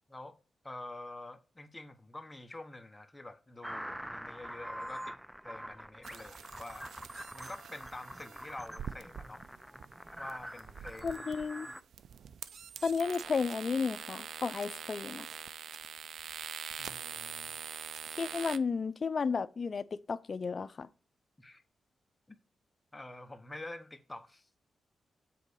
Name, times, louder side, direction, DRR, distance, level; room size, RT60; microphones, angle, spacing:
voice 1, 0.6-5.2 5.4-6.9 7.3-9.5 10.2-11.2 16.8-17.6 21.4-21.6 22.3-22.4 22.9-24.5, left 2 dB, 15° left, 1.1 m, -47 dB
sound 1, 3.6-11.8, equal, 5° right, 0.4 m, -45 dB
sound 2, 6.0-18.6, right 8 dB, 80° right, 0.4 m, -44 dB
voice 2, 11.0-11.7 12.8-15.3 18.2-20.9, left 5 dB, 45° left, 0.5 m, -33 dB
7.7 x 4.0 x 6.6 m
cardioid pair, 90°, 0 cm